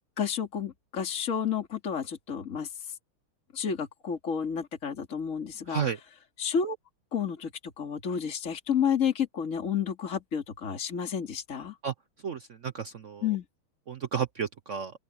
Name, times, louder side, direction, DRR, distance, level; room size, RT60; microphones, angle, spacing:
voice 1, 0.2-2.7 3.5-5.8 6.4-6.8 7.1-7.5 7.8-11.7 13.2-13.4, left 7 dB, 40° left, 2.6 m, -30 dB
voice 2, 12.2-13.2 13.9-14.9, right 7 dB, 70° right, 0.7 m, -32 dB
open air
omnidirectional pair, 2.3 m